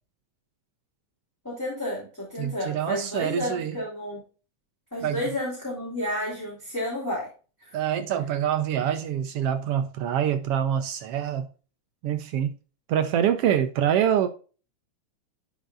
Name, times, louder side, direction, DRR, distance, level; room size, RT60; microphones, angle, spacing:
voice 1, 1.4-4.2 4.9-7.3, left 1 dB, 5° left, 2.8 m, -31 dB
voice 2, 2.4-3.8 5.0-5.2 7.7-11.5 12.0-12.5 12.9-14.3, right 9 dB, 75° right, 1.4 m, -25 dB
11.5 x 5.3 x 2.4 m
omnidirectional pair, 3.4 m